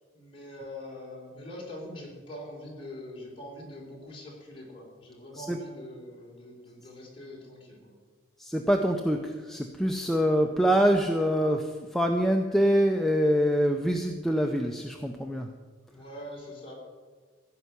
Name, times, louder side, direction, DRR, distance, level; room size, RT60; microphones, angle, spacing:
voice 1, 0.1-8.0 15.9-16.7, left 1 dB, 30° left, -3 dB, 3.8 m, -43 dB
voice 2, 8.4-15.5, equal, ahead, 3 dB, 0.6 m, -25 dB
15.5 x 5.7 x 9.6 m, 1.5 s
head